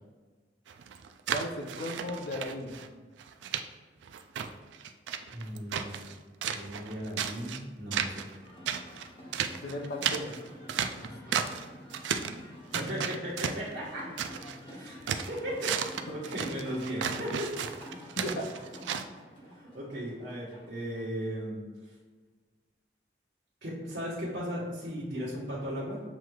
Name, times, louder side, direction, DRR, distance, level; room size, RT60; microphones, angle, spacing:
sound 1, 0.7-2.9 3.2-3.6 4.0-6.1 6.4-7.6 7.9-8.4 8.6-11.6 11.9-12.4 12.7-14.6 14.9-19.0, right 8 dB, 85° right, 0.3 m, -34 dB
voice 1, 1.3-2.8 9.6-10.4 16.1-16.2 18.2-18.5, left 1 dB, 55° left, 3 dB, 0.5 m, -36 dB
voice 2, 5.3-6.1 6.5-8.2 11.0-11.3 12.7-14.0 14.7-15.0 15.3-17.5 19.5-21.6 23.6-26.0, equal, 70° right, -9 dB, 1.2 m, -36 dB
sound 2, 8.4-21.0, left 1 dB, 30° left, 1.0 m, -49 dB
7.4 x 3.1 x 2.3 m, 1.4 s
head